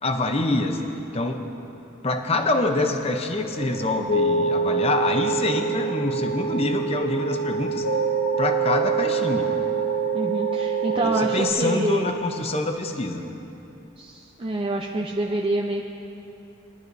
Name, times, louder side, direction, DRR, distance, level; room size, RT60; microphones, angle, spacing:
voice 1, 0.0-0.8 1.1-1.5 2.0-7.8 8.4-9.5 11.0-13.2, left 2 dB, 30° left, 5 dB, 0.7 m, -25 dB
sound 1, 3.5-11.5, right 5 dB, 50° left, 0.9 m, -25 dB
voice 2, 10.1-12.1 14.0-15.8, right 2 dB, 25° right, 0 dB, 0.4 m, -27 dB
21.0 x 12.0 x 2.7 m, 2.9 s
head